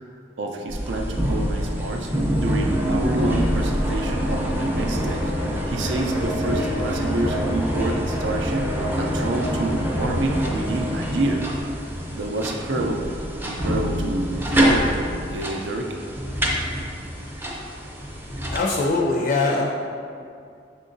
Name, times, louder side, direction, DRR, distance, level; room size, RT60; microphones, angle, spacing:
voice 1, 0.4-11.5 12.1-13.1 13.5-14.9 15.3-16.0, right 2 dB, 80° right, 3 dB, 0.5 m, -28 dB
sound 1, 0.7-18.6, equal, 10° right, 0.5 m, -25 dB
voice 2, 18.5-19.7, left 3 dB, 55° left, -1 dB, 0.4 m, -22 dB
5.7 x 3.6 x 2.6 m, 2.4 s
head